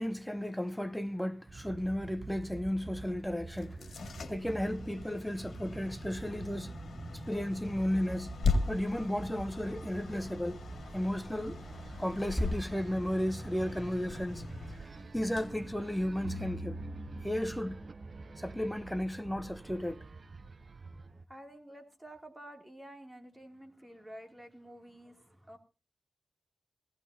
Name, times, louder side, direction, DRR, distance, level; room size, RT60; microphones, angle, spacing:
voice 1, 0.0-4.0 4.3-6.7 7.3-8.4 8.7-10.6 10.9-11.6 12.0-14.4 15.1-16.8 17.2-17.8 18.4-20.0, left 1 dB, 5° left, 0.8 m, -34 dB
sound 1, 1.5-21.2, right 3 dB, 50° right, 0.6 m, -47 dB
sound 2, 3.5-16.5, left 4 dB, 85° left, 1.9 m, -39 dB
sound 3, 16.2-19.5, right 1 dB, 85° right, 3.0 m, -44 dB
voice 2, 21.3-25.6, right 1 dB, 10° right, 2.5 m, -50 dB
18.0 x 16.0 x 2.7 m
wide cardioid pair, 95°, 0 cm